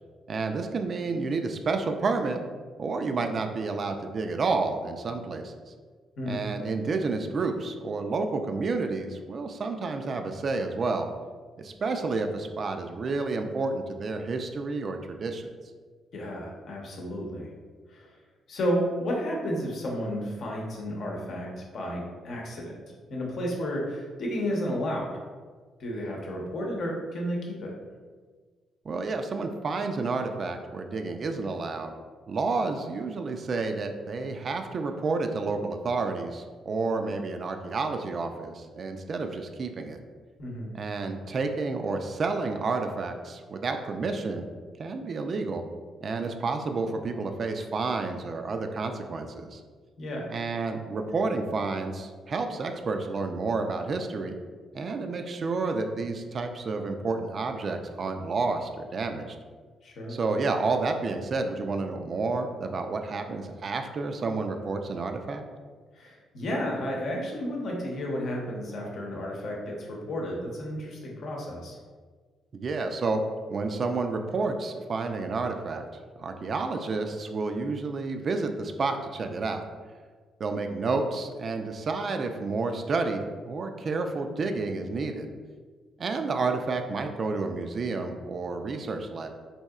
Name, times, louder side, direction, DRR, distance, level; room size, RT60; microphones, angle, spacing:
voice 1, 0.3-2.4 2.8-5.7 6.3-11.1 11.6-15.5 28.9-31.9 32.3-40.0 40.7-44.5 44.8-45.6 46.0-49.6 50.3-54.4 54.7-59.4 60.1-65.4 72.5-73.2 73.5-75.8 76.2-79.6 80.4-85.3 86.0-89.3, right 3 dB, 45° right, 6 dB, 0.3 m, -30 dB
voice 2, 16.1-17.5 17.9-18.2 18.5-22.8 23.1-25.1 25.8-27.7 40.4-40.7 50.0-50.3 59.8-60.2 65.9-71.8, equal, 60° left, -1 dB, 0.8 m, -32 dB
4.1 x 2.8 x 2.3 m, 1.5 s
cardioid pair, 90°, 0 cm